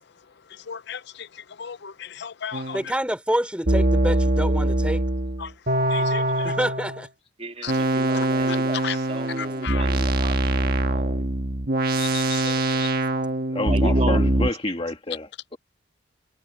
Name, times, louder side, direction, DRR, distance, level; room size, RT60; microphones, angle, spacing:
voice 1, 0.7-1.0 1.6-2.8 5.4-5.5 5.9-6.2 7.6-7.7 8.5-8.6 8.8-9.0 9.4-9.8 12.0-12.9, left 8 dB, 55° left, 0.5 m, -34 dB
sound 1, 2.5-2.8 3.7-7.0 7.7-14.5, right 1 dB, 45° right, 1.4 m, -23 dB
voice 2, 2.7-5.0 6.4-7.1, equal, 5° right, 3.2 m, -27 dB
voice 3, 7.4-11.3 13.7-14.2, right 1 dB, 30° right, 2.7 m, -33 dB
voice 4, 13.5-15.6, left 2 dB, 25° left, 1.7 m, -29 dB
head